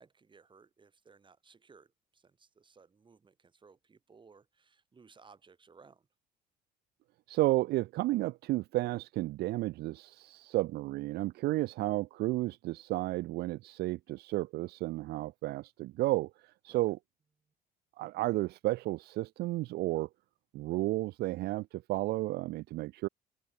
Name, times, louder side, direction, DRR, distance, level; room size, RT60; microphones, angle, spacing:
voice 1, 0.0-6.1 11.6-11.7 16.7-16.9, right 5 dB, 30° right, 7.0 m, -60 dB
voice 2, 7.3-17.0 18.0-20.1 20.5-23.1, right 18 dB, 70° right, 0.5 m, -32 dB
cardioid pair, 110°, 17 cm